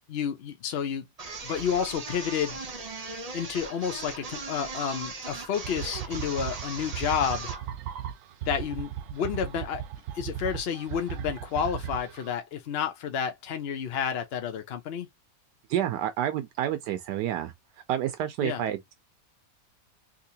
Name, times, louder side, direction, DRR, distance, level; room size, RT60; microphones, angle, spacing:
voice 1, 0.1-1.0 1.4-2.6 3.3-7.5 8.5-9.8 10.1-15.1 18.4-18.6, left 7 dB, 65° left, 0.6 m, -30 dB
sound 1, 1.2-7.7, right 3 dB, 50° right, 0.4 m, -38 dB
sound 2, 5.6-12.3, right 10 dB, 65° right, 0.9 m, -36 dB
voice 2, 15.7-17.5 17.9-18.9, right 11 dB, 85° right, 1.2 m, -29 dB
3.7 x 2.8 x 2.7 m
omnidirectional pair, 1.8 m